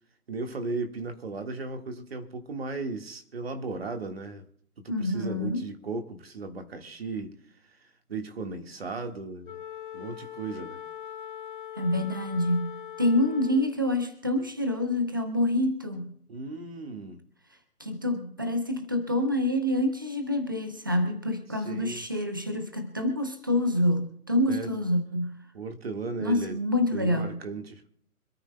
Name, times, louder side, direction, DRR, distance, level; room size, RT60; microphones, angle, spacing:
voice 1, 0.3-4.4 4.8-7.4 7.8-9.6 9.9-10.8 16.3-17.2 21.5-22.0 24.5-24.7 25.5-26.6 26.9-27.8, right 3 dB, 40° right, 1.7 m, -36 dB
voice 2, 4.9-5.6 11.8-16.1 17.8-25.4 26.2-27.4, left 1 dB, 15° right, 0.7 m, -27 dB
Wind instrument woodwind instrument, 9.4-13.8, left 10 dB, 35° left, 1.2 m, -41 dB
25.5 x 13.0 x 2.2 m
figure-of-eight pair, 160°, 45 cm